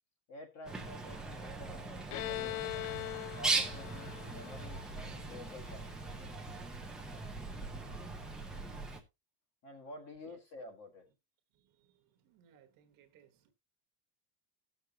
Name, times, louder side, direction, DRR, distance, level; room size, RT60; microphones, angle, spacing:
voice 1, 0.3-2.7 3.4-6.2 9.6-11.0, left 1 dB, 30° left, 4 dB, 1.7 m, -50 dB
Bird, 0.6-9.0, right 3 dB, ahead, 0.7 m, -39 dB
Bowed string instrument, 2.1-5.7, left 18 dB, 90° left, 0.6 m, -41 dB
voice 2, 11.8-13.5, right 9 dB, 40° right, 6 dB, 1.4 m, -64 dB
17.5 x 6.5 x 2.8 m, 0.24 s
cardioid pair, 170°, 50 cm